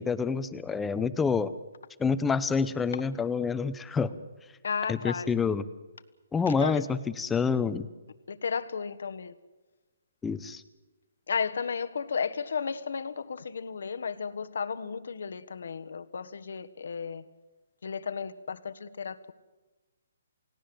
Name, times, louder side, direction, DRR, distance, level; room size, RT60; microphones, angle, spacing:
voice 1, 0.0-1.5 2.0-4.1 4.9-5.7 6.3-7.9 10.2-10.6, left 5 dB, 5° left, 14 dB, 0.8 m, -27 dB
voice 2, 4.6-5.3 6.5-6.8 8.3-9.4 11.3-17.2 17.8-19.3, left 6 dB, 75° left, 11 dB, 1.4 m, -33 dB
29.0 x 17.5 x 7.9 m, 1.2 s
hypercardioid pair, 165°, 0 cm